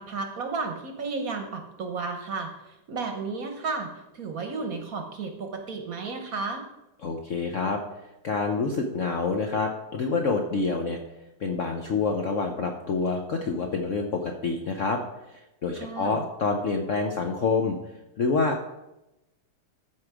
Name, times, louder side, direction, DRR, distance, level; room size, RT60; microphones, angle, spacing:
voice 1, 0.0-2.5 2.9-6.6 15.7-16.2, right 4 dB, 55° right, 5 dB, 1.1 m, -33 dB
voice 2, 7.0-7.8 8.2-11.0 11.4-15.0 15.3-17.8 18.2-18.6, left 4 dB, 80° left, 3 dB, 0.6 m, -27 dB
13.5 x 4.7 x 4.8 m, 0.93 s
omnidirectional pair, 2.3 m